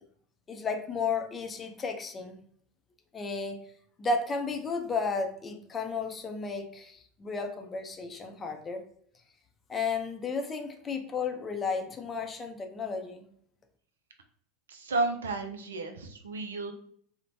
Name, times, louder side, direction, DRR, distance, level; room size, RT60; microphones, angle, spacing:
voice 1, 0.5-2.4 3.1-3.6 4.0-8.8 9.7-13.3, left 4 dB, 25° left, 5 dB, 0.5 m, -33 dB
voice 2, 14.7-16.7, right 3 dB, 80° right, 5 dB, 0.4 m, -32 dB
3.0 x 2.1 x 2.7 m, 0.62 s
hypercardioid pair, 85°, 0 cm